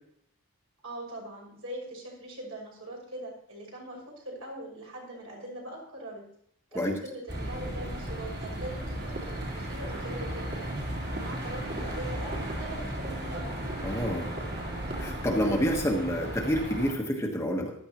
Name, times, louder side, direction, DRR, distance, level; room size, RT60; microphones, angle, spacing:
voice 1, 0.8-6.2 6.7-10.7 11.1-13.5, right 1 dB, 65° right, -2 dB, 6.1 m, -41 dB
sound 1, 7.3-16.9, right 1 dB, 50° right, 3.7 m, -35 dB
voice 2, 13.8-14.3 15.0-17.7, equal, 10° left, 0 dB, 1.3 m, -28 dB
15.0 x 12.5 x 3.1 m, 0.67 s
head